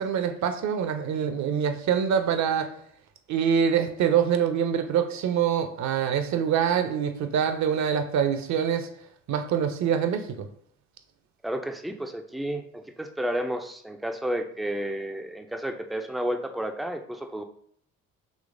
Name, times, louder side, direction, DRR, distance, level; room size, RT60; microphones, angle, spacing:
voice 1, 0.0-2.7 3.3-8.9 9.3-10.5, right 8 dB, 45° right, 8 dB, 0.6 m, -25 dB
voice 2, 11.4-17.4, right 1 dB, ahead, 5 dB, 0.4 m, -31 dB
5.1 x 3.1 x 2.5 m, 0.65 s
figure-of-eight pair, 50°, 39 cm